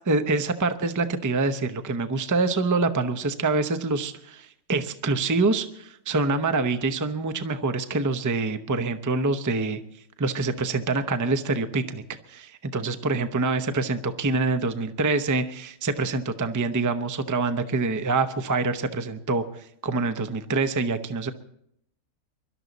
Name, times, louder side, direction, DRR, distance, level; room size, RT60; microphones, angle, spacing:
voice 1, 0.1-9.8 10.2-12.0 12.3-21.3, right 3 dB, 20° right, 9 dB, 0.6 m, -26 dB
24.0 x 12.5 x 4.1 m, 0.73 s
omnidirectional pair, 1.6 m